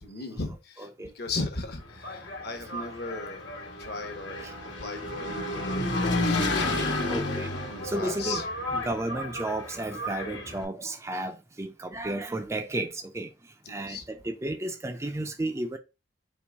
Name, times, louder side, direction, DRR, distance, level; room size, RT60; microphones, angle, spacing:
voice 1, 0.0-4.5 4.8-6.6 7.7-8.4 8.7-8.9 13.6-14.0, left 3 dB, 60° left, 1.0 m, -37 dB
Engine, 1.8-10.6, left 2 dB, 85° left, 1.2 m, -31 dB
voice 2, 6.6-8.4 8.7-15.8, right 2 dB, 15° right, 0.4 m, -33 dB
4.6 x 3.0 x 3.5 m
head